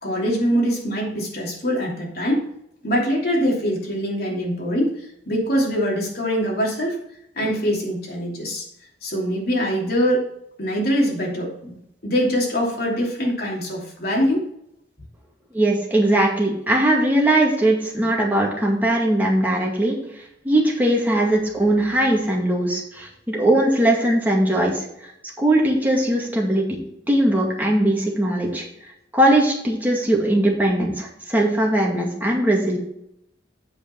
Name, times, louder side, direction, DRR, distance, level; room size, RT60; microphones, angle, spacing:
voice 1, 0.0-2.5 2.8-5.0 5.2-7.0 7.3-8.7 9.0-10.3 10.6-11.8 12.0-14.5, equal, 60° left, -2 dB, 2.9 m, -23 dB
voice 2, 15.5-20.0 20.4-24.9 25.4-26.8 27.1-28.6 29.1-32.8, right 1 dB, 10° right, -2 dB, 2.1 m, -20 dB
8.1 x 6.5 x 4.5 m, 0.77 s
head